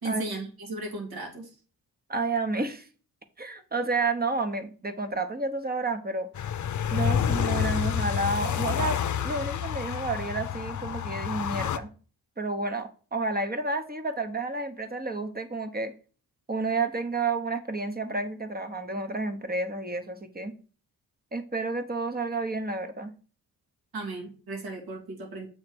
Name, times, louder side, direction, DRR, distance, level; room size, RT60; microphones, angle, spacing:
voice 1, 0.0-1.5 23.9-25.5, right 2 dB, 75° right, 2.3 m, -35 dB
voice 2, 2.1-2.9 3.4-6.3 6.9-11.9 12.4-15.9 16.5-20.5 21.3-23.1, right 3 dB, 25° right, 1.2 m, -30 dB
sound 1, 6.4-11.8, left 9 dB, 50° left, 0.6 m, -28 dB
7.5 x 3.2 x 6.2 m
cardioid pair, 60°, 37 cm